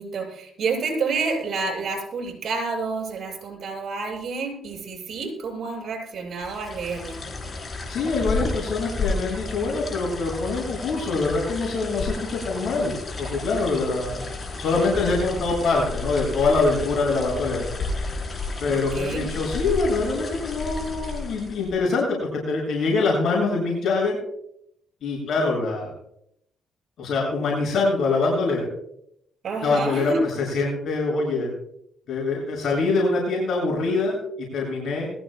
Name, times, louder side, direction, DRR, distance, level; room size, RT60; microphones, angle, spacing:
voice 1, 0.0-7.2 18.7-19.3 29.4-30.2, right 4 dB, 55° right, 0 dB, 6.4 m, -29 dB
sound 1, 6.4-21.8, left 3 dB, 35° left, 4.2 m, -32 dB
voice 2, 7.9-17.7 18.6-24.2 25.0-25.9 27.0-28.7 29.6-30.1 30.5-31.5 32.1-35.1, left 3 dB, 65° left, -3 dB, 7.1 m, -24 dB
21.0 x 15.0 x 2.3 m, 0.72 s
cardioid pair, 90°, 0 cm